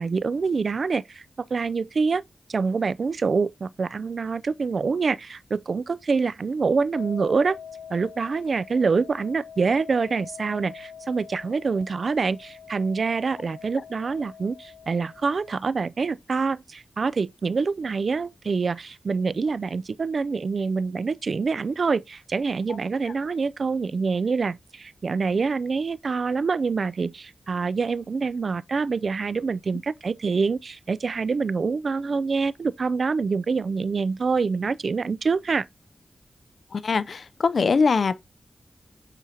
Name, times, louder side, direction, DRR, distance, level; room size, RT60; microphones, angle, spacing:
voice 1, 0.0-2.2 2.5-7.6 7.9-35.7, right 4 dB, 65° right, 0.3 m, -26 dB
sound 1, 6.9-15.6, left 7 dB, 50° left, 2.8 m, -44 dB
voice 2, 36.7-38.1, left 5 dB, 70° left, 0.5 m, -22 dB
8.2 x 5.0 x 2.8 m
wide cardioid pair, 100°, 0 cm